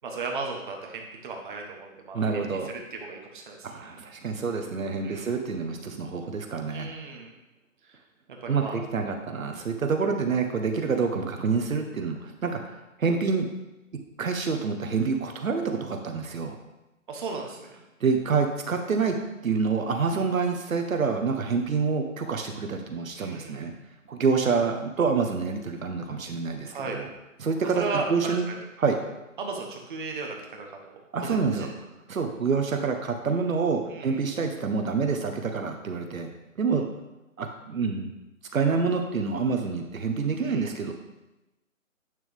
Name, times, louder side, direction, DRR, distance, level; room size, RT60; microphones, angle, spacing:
voice 1, 0.0-2.2 2.7-3.9 5.0-5.3 6.7-7.3 7.9-8.0 8.3-8.8 17.1-17.8 20.2-20.3 23.2-23.7 26.7-27.0 27.7-28.6 29.4-31.7 33.8-34.2 40.4-40.7, right 4 dB, 35° right, 1 dB, 1.3 m, -36 dB
voice 2, 2.1-2.7 3.6-6.9 8.5-12.7 13.0-13.5 14.2-16.6 18.0-19.2 19.4-23.7 24.1-27.1 27.4-28.5 28.8-29.0 31.1-31.7 32.1-36.3 36.6-36.9 37.4-38.1 38.5-40.9, right 5 dB, 75° right, 4 dB, 1.3 m, -27 dB
9.0 x 6.5 x 3.5 m, 1.0 s
hypercardioid pair, 165°, 41 cm